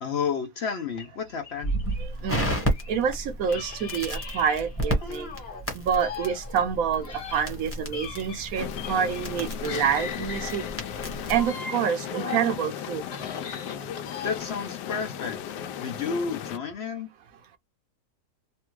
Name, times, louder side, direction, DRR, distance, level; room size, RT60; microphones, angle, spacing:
voice 1, 0.0-1.7 14.2-17.1, left 6 dB, 65° left, 0.6 m, -31 dB
sound 1, 0.9-3.0 3.4-5.6 6.0-9.4 9.6-12.6 12.9-14.6, left 5 dB, 45° left, 1.0 m, -40 dB
Crackle, 1.6-11.5, right 1 dB, 10° left, 0.9 m, -32 dB
voice 2, 2.0-2.5 2.9-5.3 5.7-7.1 7.3-10.6 11.3-13.0, right 7 dB, 65° right, 0.9 m, -27 dB
sound 2, 8.5-16.6, left 9 dB, 90° left, 1.2 m, -36 dB
3.3 x 2.3 x 3.0 m
omnidirectional pair, 1.8 m